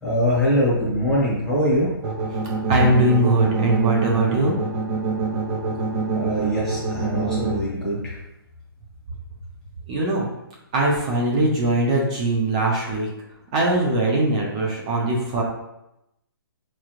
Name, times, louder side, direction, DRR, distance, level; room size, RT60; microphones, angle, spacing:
voice 1, 0.0-1.9 6.1-8.1, equal, 5° left, -9 dB, 0.9 m, -22 dB
sound 1, 2.0-7.5, right 4 dB, 40° right, 1.4 m, -25 dB
voice 2, 2.7-4.6 9.9-10.3 10.7-13.1 13.5-15.4, right 2 dB, 15° right, -3 dB, 0.4 m, -20 dB
4.7 x 3.1 x 2.4 m, 0.89 s
hypercardioid pair, 170°, 13 cm